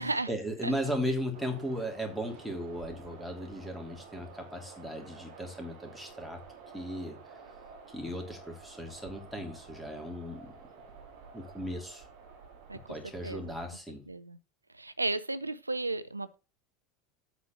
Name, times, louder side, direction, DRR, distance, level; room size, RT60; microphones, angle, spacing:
voice 1, 0.0-6.4 6.7-7.2 7.9-10.5 11.3-12.1 12.9-14.0, equal, ahead, 2.9 m, -36 dB
sound 1, 1.3-13.8, right 5 dB, 60° right, 1.8 m, -51 dB
voice 2, 14.1-14.4 14.8-16.4, right 2 dB, 90° right, 0.4 m, -33 dB
8.2 x 4.3 x 6.9 m
figure-of-eight pair, 75°, 0 cm